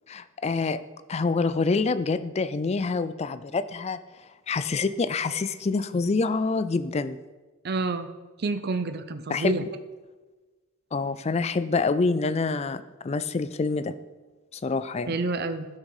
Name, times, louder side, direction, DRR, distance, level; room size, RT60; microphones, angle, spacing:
voice 1, 0.1-0.8 1.1-4.0 4.5-7.2 9.3-9.6 10.9-13.9 14.5-15.2, left 4 dB, 30° left, 14 dB, 0.4 m, -26 dB
voice 2, 7.6-8.1 8.4-9.6 15.1-15.7, right 3 dB, 50° right, 11 dB, 0.6 m, -28 dB
12.0 x 6.4 x 4.8 m, 1.2 s
head